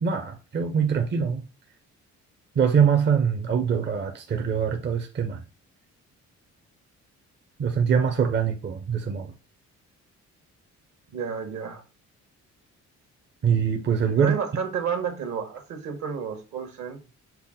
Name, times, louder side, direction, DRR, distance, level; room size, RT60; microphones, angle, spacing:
voice 1, 0.0-1.4 2.6-5.4 7.6-9.3 13.4-14.4, right 7 dB, 35° right, 0.6 m, -23 dB
voice 2, 11.1-11.8 14.2-17.0, right 7 dB, 65° right, 1.2 m, -31 dB
5.6 x 2.1 x 3.7 m
cardioid pair, 90°, 30 cm